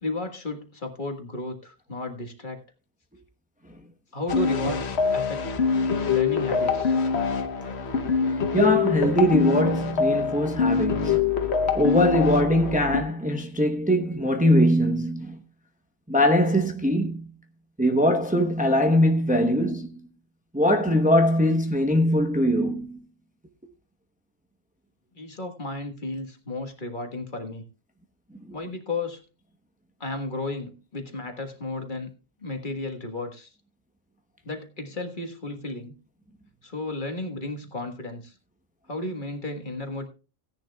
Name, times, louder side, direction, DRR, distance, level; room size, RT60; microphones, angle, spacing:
voice 1, 0.0-2.6 4.1-5.6 6.1-7.0 25.1-27.6 28.5-29.2 30.0-32.1 32.4-33.5 34.4-36.0 36.6-38.3 38.9-40.1, left 2 dB, 50° left, 1.7 m, -33 dB
sound 1, 4.3-13.0, left 5 dB, 85° left, 1.2 m, -24 dB
voice 2, 8.5-11.3 11.7-15.4 16.1-17.3 17.8-20.0 20.5-23.0 28.5-28.6, equal, 10° right, 0.8 m, -22 dB
16.5 x 10.5 x 2.3 m
omnidirectional pair, 1.1 m